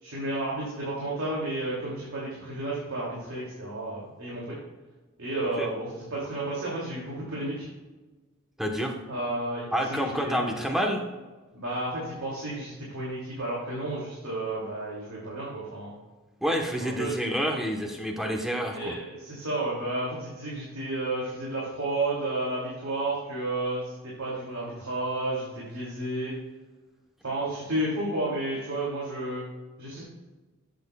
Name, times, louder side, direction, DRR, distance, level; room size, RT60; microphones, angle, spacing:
voice 1, 0.0-4.6 5.2-7.7 9.1-10.5 11.5-15.9 16.8-17.1 18.7-23.9 24.2-26.3 27.2-29.4 29.8-30.0, right 2 dB, 85° right, -6 dB, 2.7 m, -32 dB
voice 2, 8.6-8.9 9.7-11.0 16.4-18.9, equal, ahead, 1 dB, 1.2 m, -28 dB
11.5 x 8.2 x 2.4 m, 1.2 s
head